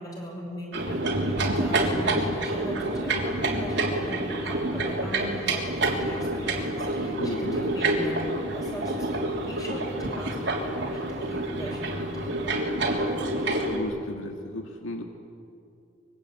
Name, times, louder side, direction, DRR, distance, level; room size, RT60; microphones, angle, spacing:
voice 1, 0.0-12.8, equal, 20° left, -1 dB, 6.7 m, -40 dB
sound 1, 0.7-13.8, right 2 dB, 60° right, 3.4 m, -28 dB
voice 2, 7.1-7.7 13.6-15.0, left 1 dB, 85° left, 3 dB, 1.8 m, -34 dB
24.0 x 22.5 x 8.9 m, 2.5 s
head